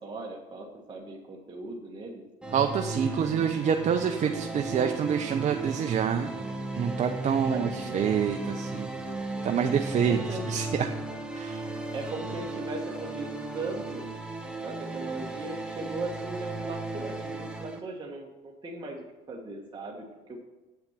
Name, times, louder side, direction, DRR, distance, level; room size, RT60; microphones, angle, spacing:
voice 1, 0.0-2.2 7.5-8.0 9.9-10.5 11.9-14.2 14.6-20.4, right 2 dB, 25° right, -2 dB, 1.4 m, -38 dB
sound 1, 2.4-17.8, right 2 dB, 5° right, 1.2 m, -36 dB
voice 2, 2.5-6.3 6.8-8.9 9.4-10.2 10.5-10.9 11.3-11.6, right 7 dB, 40° right, 5 dB, 0.7 m, -27 dB
7.9 x 5.7 x 7.3 m, 1.1 s
supercardioid pair, 85°, 19 cm